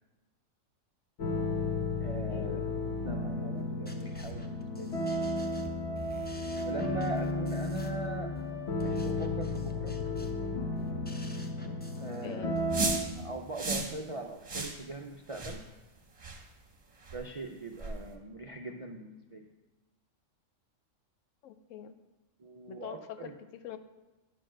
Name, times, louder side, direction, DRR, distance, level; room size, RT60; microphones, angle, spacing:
sound 1, 1.2-13.0, left 2 dB, 60° left, 1.2 m, -33 dB
voice 1, 2.0-2.7 3.1-5.0 6.5-10.0 12.0-12.6 13.2-15.6 17.1-19.5 22.4-23.4, right 3 dB, 60° right, 2 dB, 0.3 m, -41 dB
sound 2, 3.6-13.2, equal, 15° left, 0.4 m, -49 dB
voice 2, 12.2-12.6 21.4-21.9 22.7-23.3 23.6-23.8, left 10 dB, 85° left, 10 dB, 1.0 m, -43 dB
sound 3, 12.7-13.1 13.6-13.9 14.5-14.8 15.3-15.6 16.2-16.4 17.1-17.2 17.8-18.0, right 3 dB, 30° right, 0.9 m, -33 dB
10.0 x 4.5 x 6.1 m, 1.1 s
omnidirectional pair, 1.3 m